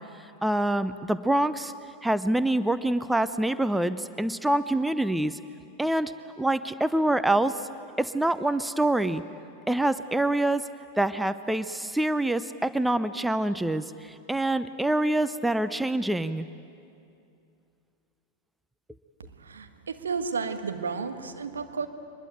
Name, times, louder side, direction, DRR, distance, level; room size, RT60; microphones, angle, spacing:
voice 1, 0.4-1.7 2.0-5.4 5.8-7.6 8.0-9.2 9.7-10.6 11.0-16.5, right 1 dB, 5° right, 13 dB, 0.6 m, -26 dB
voice 2, 19.4-21.9, right 5 dB, 70° right, 7 dB, 1.5 m, -32 dB
24.0 x 21.0 x 9.1 m, 2.5 s
figure-of-eight pair, 90°, 0 cm